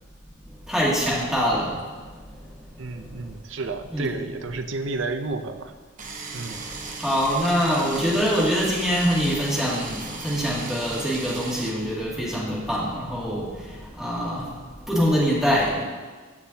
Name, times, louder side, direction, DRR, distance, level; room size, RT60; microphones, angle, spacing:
voice 1, 0.7-1.8 3.9-4.1 7.0-13.5 14.0-14.5 14.9-15.8, equal, 5° right, -7 dB, 2.4 m, -24 dB
voice 2, 2.8-5.7 6.3-6.7, right 3 dB, 65° right, 8 dB, 0.6 m, -31 dB
sound 1, 6.0-11.7, right 3 dB, 40° right, 1.0 m, -37 dB
16.5 x 6.0 x 2.8 m, 1.4 s
head